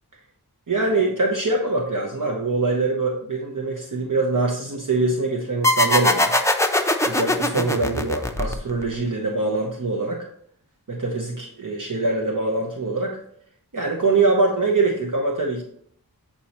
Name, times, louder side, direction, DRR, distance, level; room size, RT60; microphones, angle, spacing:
voice 1, 0.7-6.3 7.0-10.2 10.9-13.2 13.7-15.6, right 3 dB, 60° right, 0 dB, 0.9 m, -23 dB
sound 1, 5.6-8.9, left 1 dB, 10° left, 0.6 m, -21 dB
8.1 x 4.3 x 3.0 m, 0.64 s
wide cardioid pair, 45°, 36 cm